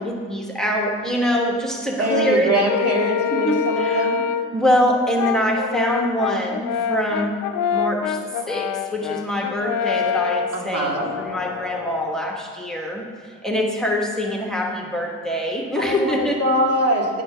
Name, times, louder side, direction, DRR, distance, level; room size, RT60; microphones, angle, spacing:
voice 1, 0.0-2.5 3.3-4.1 4.5-7.4 7.7-8.2 8.5-16.4, equal, ahead, -1 dB, 1.3 m, -24 dB
voice 2, 2.0-4.2 10.5-11.1 15.8-17.2, right 1 dB, 55° right, -1 dB, 2.0 m, -22 dB
Brass instrument, 2.1-4.6 5.2-12.1, left 8 dB, 85° left, 0.5 m, -26 dB
10.0 x 5.1 x 5.0 m, 2.2 s
cardioid pair, 90°, 30 cm